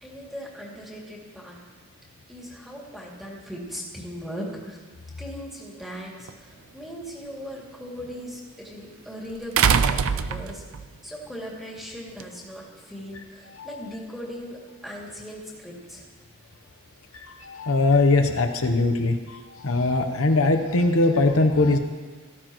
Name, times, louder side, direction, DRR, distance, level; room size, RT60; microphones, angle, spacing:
voice 1, 0.0-1.6 2.3-4.8 5.2-10.7 11.0-16.1, equal, ahead, -4 dB, 2.5 m, -38 dB
College door slam, 6.3-6.4 9.6-10.9 12.2-12.3, right 7 dB, 65° right, 0.5 m, -22 dB
voice 2, 17.1-21.8, left 2 dB, 65° left, 5 dB, 0.9 m, -21 dB
17.5 x 14.5 x 3.1 m, 1.4 s
head